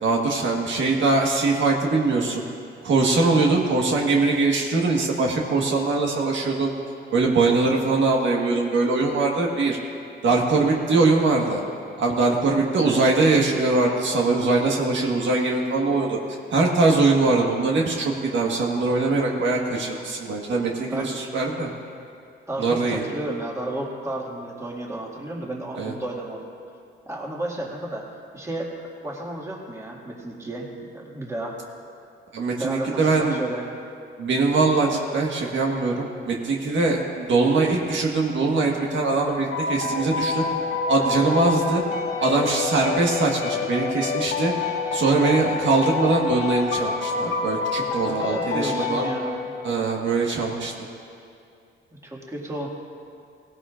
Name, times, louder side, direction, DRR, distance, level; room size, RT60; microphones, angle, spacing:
voice 1, 0.0-2.4 2.8-6.7 7.1-9.8 10.2-11.6 12.0-16.2 16.5-21.7 22.6-23.0 25.7-25.9 32.3-33.4 34.2-40.4 40.9-41.8 42.2-44.5 44.9-49.1 49.6-50.7, right 3 dB, 65° right, 0 dB, 1.5 m, -22 dB
voice 2, 12.8-13.9 20.9-21.1 22.5-26.4 27.1-28.0 28.3-30.7 30.9-31.6 32.6-33.7 48.1-49.5 52.0-52.7, right 1 dB, 15° right, -2 dB, 2.0 m, -32 dB
sound 1, 39.5-49.9, left 4 dB, 75° left, 1.8 m, -27 dB
18.0 x 17.0 x 2.5 m, 2.5 s
cardioid pair, 110°, 21 cm